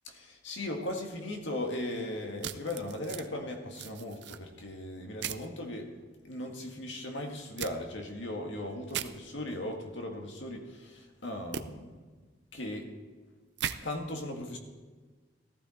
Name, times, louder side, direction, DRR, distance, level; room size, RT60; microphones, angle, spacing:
voice 1, 0.1-5.9 6.2-12.0 12.5-12.9 13.8-14.6, left 1 dB, 80° left, 3 dB, 1.9 m, -38 dB
sound 1, 2.4-3.3 3.7-4.4 5.2-5.5 7.6-7.7 8.9-9.1 11.5-11.6 13.6-13.8, right 9 dB, 65° right, 0.6 m, -37 dB
14.5 x 14.5 x 4.4 m, 1.4 s
head